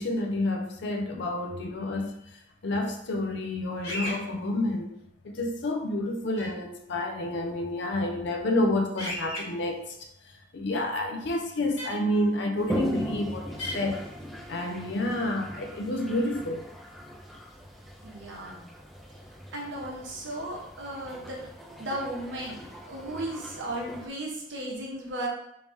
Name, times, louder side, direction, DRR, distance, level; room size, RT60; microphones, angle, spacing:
voice 1, 0.0-2.2 2.6-5.0 5.2-10.0 10.5-14.0 14.5-16.7, left 1 dB, 60° left, 3 dB, 0.5 m, -29 dB
sound 1, 3.8-4.2 6.4-6.5 9.0-9.4 11.8-11.9 13.6-13.7, left 1 dB, 85° left, 1.5 m, -33 dB
Toilet flush, 12.6-24.1, equal, ahead, 0.3 m, -39 dB
voice 2, 18.0-18.6 19.5-21.4 21.8-22.6 22.8-25.3, right 1 dB, 65° right, -2 dB, 1.0 m, -35 dB
3.2 x 2.7 x 3.4 m, 0.76 s
head